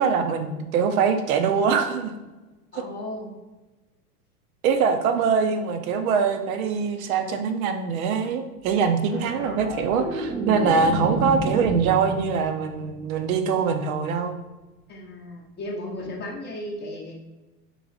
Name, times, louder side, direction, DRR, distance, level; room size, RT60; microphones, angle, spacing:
voice 1, 0.0-2.1 4.6-14.4, right 5 dB, 65° right, 7 dB, 0.7 m, -23 dB
voice 2, 2.7-3.3 14.9-17.2, left 1 dB, 20° left, -1 dB, 0.7 m, -35 dB
sound 1, 9.1-13.6 16.0-16.2, right 2 dB, 20° right, 0.7 m, -30 dB
3.1 x 3.0 x 3.8 m, 1.1 s
hypercardioid pair, 115°, 46 cm